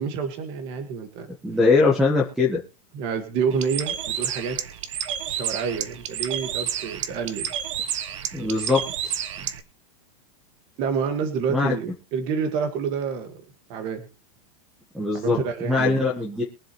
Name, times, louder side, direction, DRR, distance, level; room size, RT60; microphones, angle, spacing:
voice 1, 0.0-1.3 2.9-4.6 5.3-7.5 9.4-9.5 10.8-13.3 13.7-14.0 15.1-16.1, right 6 dB, 30° right, 7 dB, 1.7 m, -28 dB
voice 2, 1.4-2.6 8.3-8.8 11.5-11.7 14.9-15.4 15.7-16.4, left 3 dB, ahead, 2 dB, 1.3 m, -21 dB
Bird, 3.5-9.6, right 9 dB, 55° right, 1.2 m, -30 dB
23.0 x 7.7 x 3.1 m, 0.34 s
supercardioid pair, 180°, 19 cm